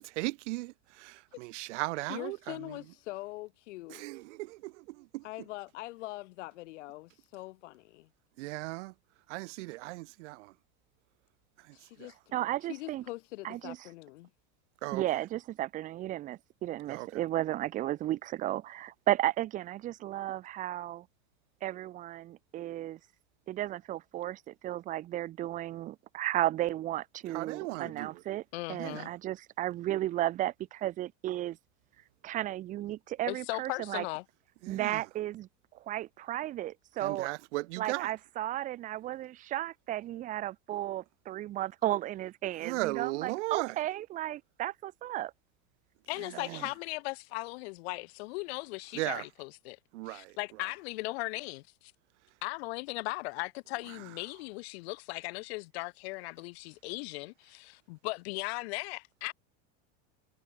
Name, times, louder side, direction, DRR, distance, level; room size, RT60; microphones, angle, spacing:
voice 1, 0.0-2.4 3.9-5.2 8.4-8.9 9.3-10.5 14.8-15.0 16.9-17.1 27.3-28.2 28.8-29.1 34.6-35.0 37.0-38.1 42.6-43.7 46.5-46.6 48.9-49.2 49.9-50.3, right 22 dB, 85° right, 0.8 m, -36 dB
voice 2, 2.0-4.0 5.2-8.1 11.7-12.2 12.6-14.3, left 19 dB, 90° left, 2.7 m, -43 dB
voice 3, 12.3-13.0 13.4-13.8 14.9-21.0 21.6-23.0 23.5-28.4 28.7-31.6 32.2-34.0 34.7-35.5 35.9-37.3 37.8-45.3 46.3-46.4, right 14 dB, 20° right, 0.7 m, -34 dB
voice 4, 28.5-29.1 33.3-34.2 46.1-49.8 50.1-51.9 52.4-59.3, left 24 dB, 60° left, 0.7 m, -38 dB
cardioid pair, 180°, 35 cm